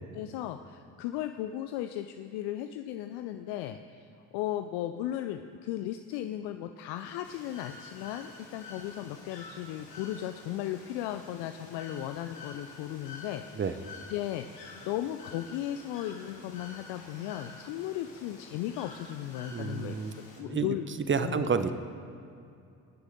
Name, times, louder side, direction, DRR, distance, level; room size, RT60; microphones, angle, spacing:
voice 1, 0.1-4.1 4.3-13.8 14.1-20.0 20.4-20.9 21.2-21.5, left 12 dB, 60° left, 8 dB, 0.7 m, -36 dB
Bird / Water, 7.2-20.4, left 3 dB, 85° left, 2.0 m, -49 dB
voice 2, 19.5-20.8 21.1-21.8, right 5 dB, 25° right, 11 dB, 0.9 m, -30 dB
23.0 x 9.6 x 3.9 m, 2.5 s
hypercardioid pair, 50°, 46 cm